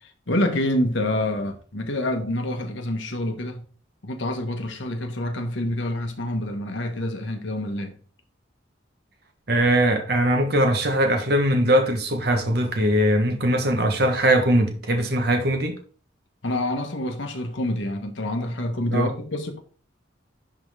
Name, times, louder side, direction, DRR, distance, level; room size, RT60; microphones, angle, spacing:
voice 1, 0.0-3.6 4.0-8.0 16.4-19.6, left 1 dB, 75° left, 1.4 m, -27 dB
voice 2, 9.5-15.8 18.9-19.1, right 1 dB, 50° right, 1.0 m, -21 dB
11.0 x 3.7 x 3.4 m
head